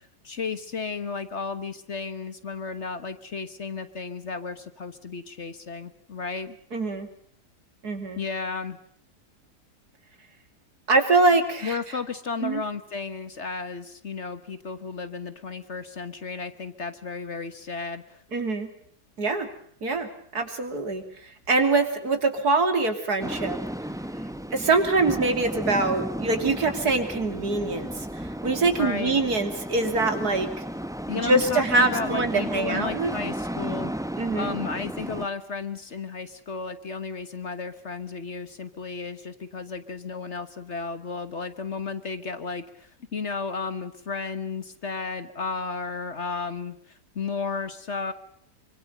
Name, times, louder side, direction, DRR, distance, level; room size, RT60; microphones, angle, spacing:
voice 1, 0.0-6.6 8.2-8.8 11.6-18.2 28.8-29.2 31.1-33.9 34.3-48.1, left 4 dB, 45° left, 12 dB, 1.5 m, -33 dB
voice 2, 6.7-7.1 7.8-8.2 10.9-11.8 12.4-12.6 18.3-18.7 19.2-19.5 19.8-23.6 24.5-28.1 28.4-30.6 31.2-33.1 34.2-34.5, right 3 dB, 65° right, 7 dB, 3.5 m, -24 dB
sound 1, 23.2-35.3, equal, 5° right, 0.7 m, -34 dB
25.5 x 24.5 x 6.7 m, 0.63 s
omnidirectional pair, 1.8 m